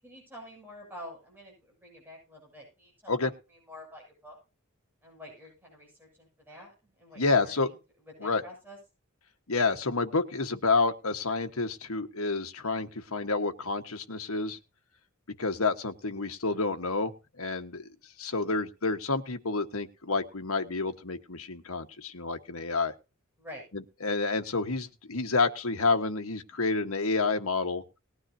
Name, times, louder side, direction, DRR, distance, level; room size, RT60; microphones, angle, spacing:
voice 1, 0.0-3.3 3.7-4.4 5.0-7.8 8.2-8.8 23.4-23.6, left 1 dB, 10° right, -1 dB, 7.6 m, -48 dB
voice 2, 7.2-7.7 8.2-8.4 9.5-14.6 15.4-17.9 18.2-22.9 23.7-27.8, left 3 dB, 85° left, 6 dB, 1.5 m, -29 dB
19.5 x 9.8 x 2.9 m, 0.30 s
head